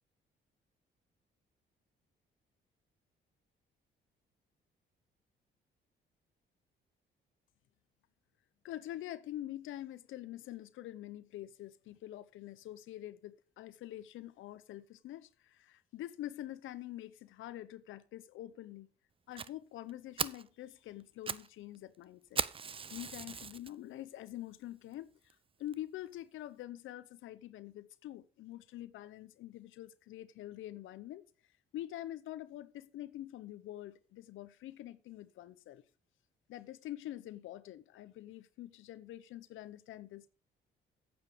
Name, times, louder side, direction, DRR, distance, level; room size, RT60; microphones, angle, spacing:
voice 1, 8.6-18.9 19.3-22.4 22.9-31.2 31.7-35.8 36.5-40.3, left 13 dB, 85° left, 0.7 m, -46 dB
Fire, 19.4-19.5 19.9-20.0 20.2-20.5 21.0-21.5 21.8-21.9 22.4-23.7 24.3-24.4 24.9-25.0 25.3-25.4 25.7-25.8, right 6 dB, 25° right, 0.5 m, -37 dB
9.1 x 8.1 x 5.1 m
cardioid pair, 90°, 20 cm